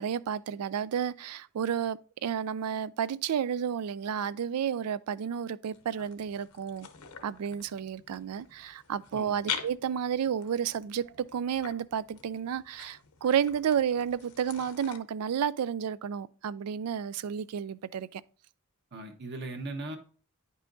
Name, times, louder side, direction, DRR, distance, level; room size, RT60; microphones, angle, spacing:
voice 1, 0.0-6.9 7.2-18.2, right 8 dB, 85° right, 0.4 m, -31 dB
sound 1, 5.7-15.0, left 7 dB, 85° left, 0.9 m, -44 dB
voice 2, 18.9-20.0, right 2 dB, 50° right, 1.2 m, -38 dB
9.9 x 5.5 x 2.6 m
head